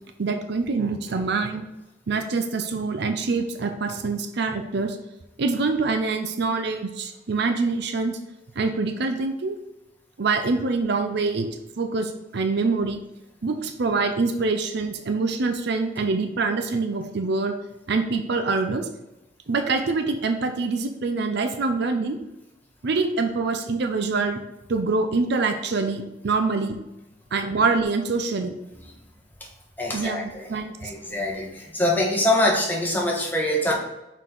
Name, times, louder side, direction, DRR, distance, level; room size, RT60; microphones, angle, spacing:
voice 1, 0.2-1.7 2.1-5.0 5.4-8.2 8.6-9.6 10.2-11.5 11.8-13.0 13.4-17.5 17.9-18.9 19.5-22.2 22.8-24.4 24.7-26.8 27.3-28.5 29.9-30.9, right 3 dB, 60° right, 7 dB, 0.6 m, -25 dB
voice 2, 29.8-30.5 30.8-33.7, left 1 dB, 10° left, -2 dB, 1.4 m, -24 dB
5.8 x 4.7 x 3.9 m, 0.94 s
head